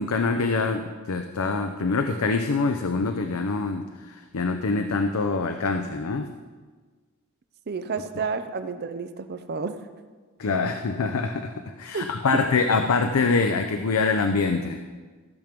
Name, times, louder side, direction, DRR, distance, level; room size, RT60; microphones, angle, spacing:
voice 1, 0.0-6.3 10.4-14.8, left 4 dB, 75° left, 7 dB, 0.6 m, -25 dB
voice 2, 7.7-9.8 11.9-12.1, right 5 dB, 45° right, 10 dB, 0.5 m, -30 dB
15.0 x 6.0 x 5.1 m, 1.4 s
head